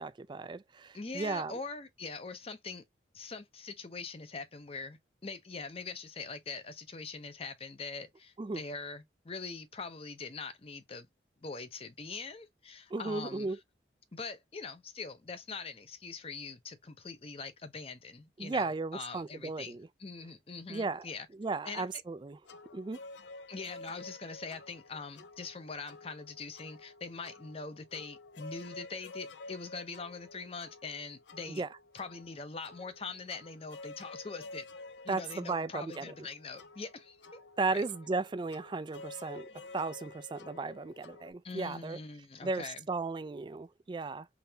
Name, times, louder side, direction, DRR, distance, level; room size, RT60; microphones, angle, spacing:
voice 1, 0.0-1.5 8.4-8.6 12.9-13.6 18.4-19.9 20.7-21.1 21.4-22.4 22.7-23.0 31.6-31.7 35.1-36.1 37.6-39.5 39.7-42.0 42.4-44.3, right 3 dB, 25° right, 0.3 m, -35 dB
voice 2, 0.9-2.8 3.1-11.1 11.4-13.6 14.1-21.3 21.6-21.9 23.5-31.6 31.9-34.7 35.0-37.4 37.7-37.8 41.4-42.9, left 4 dB, 35° left, 0.7 m, -43 dB
sound 1, 22.5-41.3, left 3 dB, 80° left, 0.6 m, -51 dB
4.0 x 3.3 x 2.7 m
head